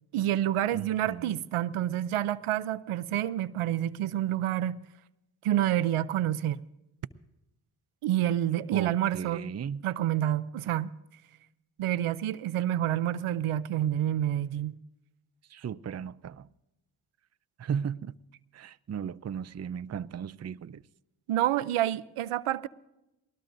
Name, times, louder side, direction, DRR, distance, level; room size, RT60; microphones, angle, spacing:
voice 1, 0.1-4.8 5.4-6.6 8.0-9.4 9.8-10.9 11.8-14.8 21.3-22.7, right 12 dB, 85° right, 0.6 m, -28 dB
voice 2, 0.7-1.4 8.7-9.9 15.5-16.5 17.6-18.1 18.5-20.8, right 7 dB, 35° right, 0.5 m, -36 dB
20.5 x 19.0 x 2.6 m
cardioid pair, 45°, 49 cm